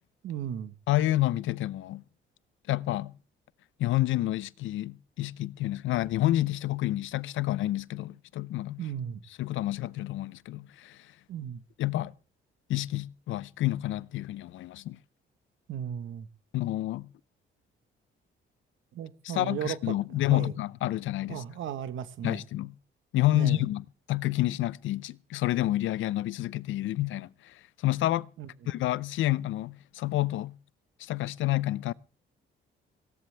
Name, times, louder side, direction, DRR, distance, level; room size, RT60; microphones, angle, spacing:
voice 1, 0.2-0.7 8.8-9.2 11.3-11.6 15.7-16.3 18.9-19.9 20.3-20.5 21.3-22.4 23.3-23.6 28.4-28.5, right 9 dB, 75° right, 1.4 m, -35 dB
voice 2, 0.9-2.0 2.7-3.1 3.8-8.8 9.4-11.1 11.8-12.1 12.7-15.0 16.5-17.1 19.2-21.4 22.2-22.7 23.1-28.3 28.7-30.6 31.0-31.9, left 15 dB, 80° left, 0.6 m, -29 dB
18.0 x 16.5 x 3.4 m
cardioid pair, 90°, 20 cm